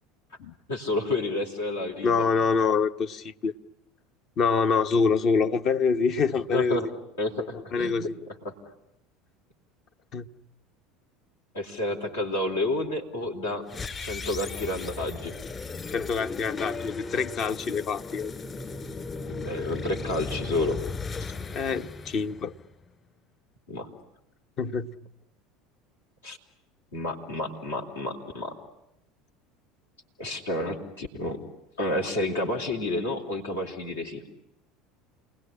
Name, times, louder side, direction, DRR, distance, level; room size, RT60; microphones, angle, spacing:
voice 1, 0.7-2.3 6.5-6.9 7.2-8.1 8.4-8.5 11.5-13.7 14.0-15.3 19.3-20.8 23.7-23.9 26.2-26.4 26.9-28.5 30.2-31.4 31.8-34.2, left 2 dB, 75° left, 3.9 m, -30 dB
voice 2, 2.0-3.5 4.4-6.8 7.7-8.2 10.1-10.3 15.9-18.3 21.5-22.5 24.6-24.9, left 5 dB, 45° left, 1.1 m, -25 dB
sound 1, 13.7-22.9, left 4 dB, 25° left, 2.9 m, -36 dB
28.5 x 20.5 x 10.0 m
figure-of-eight pair, 70°, 0 cm